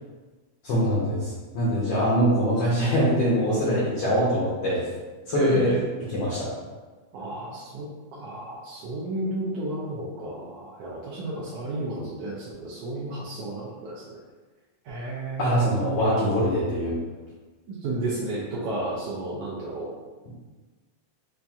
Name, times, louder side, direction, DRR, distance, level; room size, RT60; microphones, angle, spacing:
voice 1, 0.6-4.9 5.3-5.7 6.1-6.5 15.4-17.0, equal, 70° left, -8 dB, 1.5 m, -23 dB
voice 2, 5.3-5.8 7.1-14.2 14.8-16.0 17.7-19.9, right 2 dB, 85° right, -6 dB, 1.3 m, -32 dB
5.6 x 2.6 x 2.3 m, 1.3 s
omnidirectional pair, 3.4 m